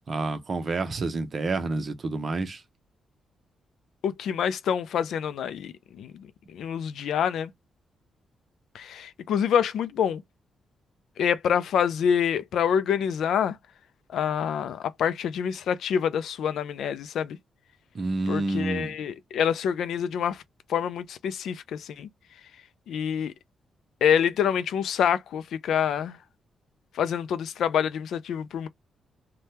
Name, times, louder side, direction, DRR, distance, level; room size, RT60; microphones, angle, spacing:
voice 1, 0.1-2.6 17.9-18.9, right 3 dB, 40° right, 0.6 m, -29 dB
voice 2, 4.0-7.5 8.7-10.2 11.2-13.6 14.1-17.4 18.3-20.4 20.7-22.1 22.9-23.3 24.0-26.2 26.9-28.7, left 8 dB, 80° left, 0.4 m, -26 dB
3.3 x 2.2 x 2.8 m
cardioid pair, 135°, 0 cm